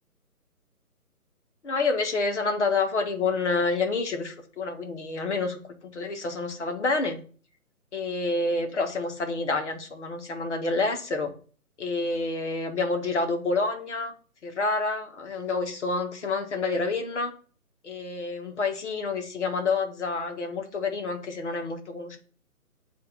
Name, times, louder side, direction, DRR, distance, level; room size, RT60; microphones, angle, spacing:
voice 1, 1.6-5.6 5.9-7.2 7.9-11.3 11.8-14.1 14.4-17.3 17.8-22.2, left 3 dB, 50° left, 5 dB, 1.4 m, -28 dB
8.0 x 2.9 x 5.3 m, 0.42 s
figure-of-eight pair, 140°, 45 cm